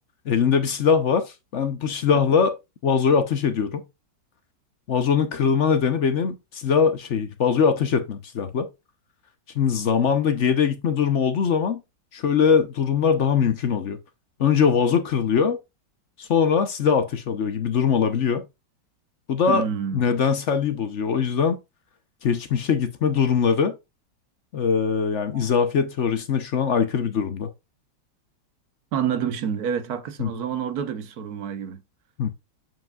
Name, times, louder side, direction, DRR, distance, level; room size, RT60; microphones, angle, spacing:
voice 1, 0.3-1.2 1.5-2.5 2.8-3.8 4.9-8.7 9.5-11.8 12.1-14.0 14.4-15.6 16.2-18.4 19.3-19.6 19.9-21.6 22.2-23.7 24.5-27.5 30.2-30.3 32.2-32.3, left 6 dB, 55° left, 0.8 m, -21 dB
voice 2, 19.5-20.0 25.3-25.5 28.9-31.8, right 8 dB, 60° right, 1.2 m, -28 dB
7.3 x 5.8 x 2.3 m
omnidirectional pair, 2.0 m